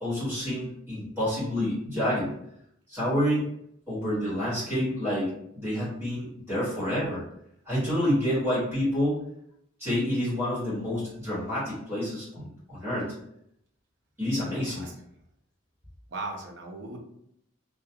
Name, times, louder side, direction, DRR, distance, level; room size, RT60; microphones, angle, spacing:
voice 1, 0.0-2.3 2.9-3.5 3.9-7.2 7.6-9.2 9.8-13.1 14.2-14.9, equal, 10° right, -10 dB, 1.4 m, -28 dB
voice 2, 14.6-15.0 16.1-17.0, right 2 dB, 60° right, 1 dB, 0.5 m, -38 dB
2.4 x 2.3 x 2.7 m, 0.75 s
head